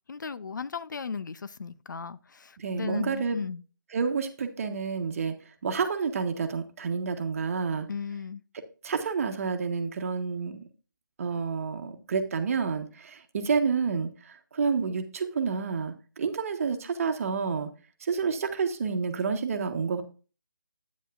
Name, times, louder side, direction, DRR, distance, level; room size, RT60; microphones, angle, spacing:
voice 1, 0.1-3.6 7.9-8.4, left 5 dB, 60° left, 0.5 m, -36 dB
voice 2, 2.6-3.4 3.9-7.9 8.8-10.6 11.2-17.7 18.0-20.0, right 5 dB, 40° right, 1.2 m, -29 dB
9.2 x 9.2 x 2.4 m
figure-of-eight pair, 150°, 11 cm